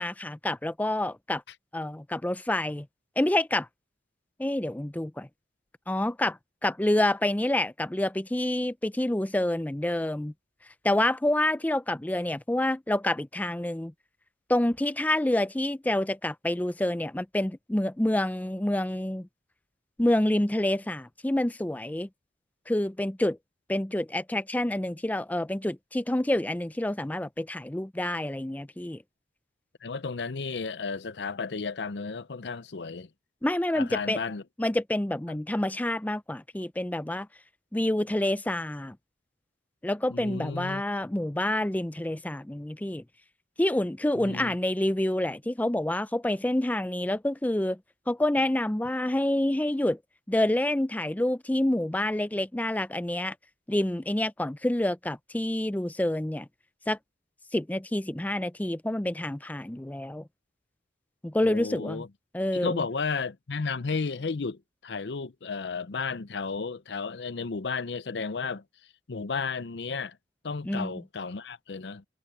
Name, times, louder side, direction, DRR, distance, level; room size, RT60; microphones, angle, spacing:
voice 1, 0.0-1.4 1.7-2.9 3.2-3.7 4.4-5.3 5.9-10.3 10.8-13.9 14.5-19.3 20.0-22.1 22.7-23.4 23.7-29.0 33.4-34.2 34.6-37.3 37.7-39.0 39.8-43.0 43.6-47.8 48.1-50.0 50.3-53.4 53.7-56.5 56.9-57.0 57.5-60.3 61.2-62.0 62.3-62.8 70.6-71.0, left 1 dB, 10° left, 0.5 m, -28 dB
voice 2, 29.8-33.1 33.7-34.4 35.3-35.4 40.1-40.8 44.2-44.5 61.4-62.1 62.5-68.6 69.1-70.2 70.4-72.1, left 4 dB, 70° left, 0.6 m, -33 dB
head